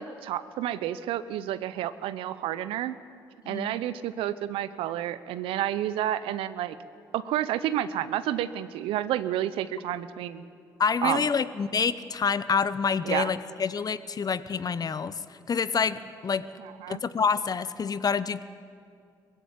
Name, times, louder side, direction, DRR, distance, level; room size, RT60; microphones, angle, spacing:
voice 1, 0.0-3.0 3.5-6.8 7.1-10.4 11.0-11.2 13.0-13.3 16.8-17.0, right 12 dB, 80° right, 14 dB, 0.8 m, -30 dB
voice 2, 10.8-16.5 16.9-18.4, left 6 dB, 45° left, 14 dB, 0.9 m, -27 dB
20.5 x 16.0 x 8.6 m, 2.3 s
hypercardioid pair, 50°, 9 cm